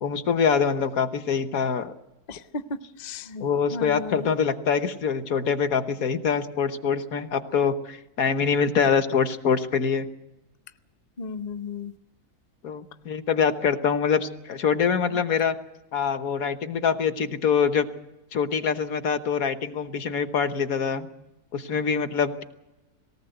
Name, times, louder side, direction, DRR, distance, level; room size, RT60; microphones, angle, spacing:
voice 1, 0.0-1.9 3.4-10.1 12.6-15.5 15.9-17.9 18.3-21.1 21.5-22.4, left 6 dB, 65° left, 9 dB, 1.6 m, -24 dB
voice 2, 2.3-2.6 3.0-4.4 11.2-11.9 15.1-15.2, left 4 dB, 40° left, 11 dB, 0.7 m, -35 dB
19.5 x 18.5 x 7.9 m, 0.99 s
omnidirectional pair, 1.6 m